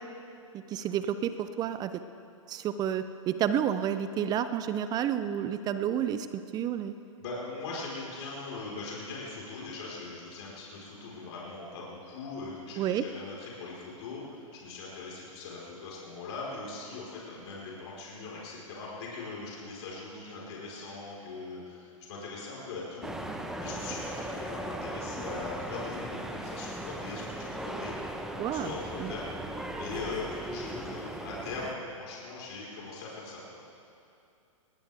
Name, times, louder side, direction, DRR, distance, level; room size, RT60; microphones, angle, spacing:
voice 1, 0.5-1.9 2.5-6.9 12.8-13.1 28.4-28.7 29.0-29.1, right 9 dB, 25° right, 11 dB, 0.5 m, -30 dB
voice 2, 7.2-23.3 23.6-29.3 29.8-33.6, left 3 dB, 55° left, -5 dB, 4.3 m, -41 dB
sound 1, 23.0-31.7, right 1 dB, 5° right, 0.9 m, -38 dB
20.5 x 17.5 x 3.4 m, 2.6 s
hypercardioid pair, 120°, 17 cm